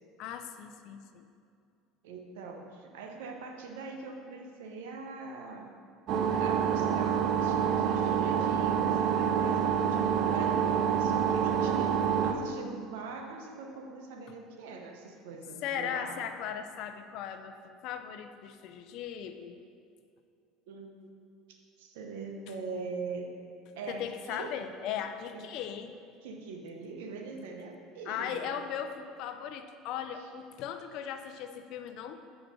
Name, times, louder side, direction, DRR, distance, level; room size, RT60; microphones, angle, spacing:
voice 1, 0.2-1.3 15.6-19.6 23.9-25.9 28.1-32.2, left 8 dB, 65° left, 8 dB, 0.5 m, -38 dB
voice 2, 2.0-5.7 6.3-16.2 20.7-21.3 21.8-23.3 23.7-24.6 25.3-25.4 26.2-28.6 30.2-30.3, right 4 dB, 85° right, 3 dB, 0.9 m, -43 dB
sound 1, 6.1-12.3, right 8 dB, 55° right, 0.6 m, -27 dB
7.4 x 5.0 x 5.1 m, 2.4 s
supercardioid pair, 105°, 0 cm